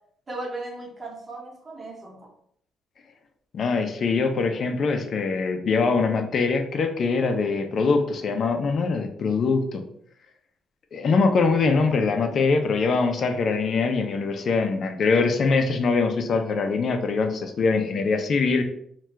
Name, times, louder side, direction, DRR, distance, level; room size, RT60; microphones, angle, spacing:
voice 1, 0.3-2.3, right 2 dB, 30° right, -1 dB, 0.9 m, -36 dB
voice 2, 3.5-9.8 10.9-18.6, left 4 dB, 55° left, 6 dB, 0.4 m, -23 dB
2.7 x 2.3 x 3.3 m, 0.67 s
cardioid pair, 95°, 0 cm